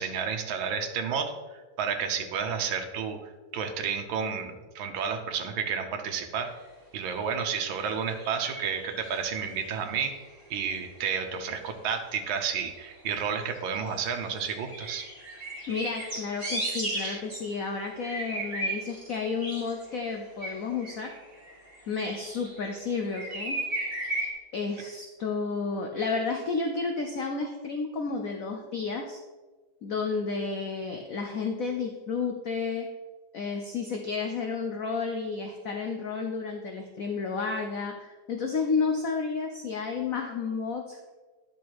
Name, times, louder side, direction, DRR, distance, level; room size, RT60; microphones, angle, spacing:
voice 1, 0.0-3.2 3.5-6.5 6.9-10.1 10.5-15.0 16.7-17.2, right 6 dB, 80° right, 5 dB, 1.7 m, -31 dB
sound 1, 7.1-7.2 8.0-9.3 9.6-10.4 10.7-11.4 12.3-13.3 13.5-14.2 14.5-17.4 18.0-19.2 19.4-22.8 23.1-24.3, right 1 dB, 20° right, 2.6 m, -36 dB
voice 2, 15.7-21.1 21.9-23.6 24.5-29.2 29.8-32.9 33.3-41.1, left 4 dB, 60° left, 3 dB, 0.9 m, -31 dB
10.5 x 6.1 x 4.7 m, 1.3 s
omnidirectional pair, 2.2 m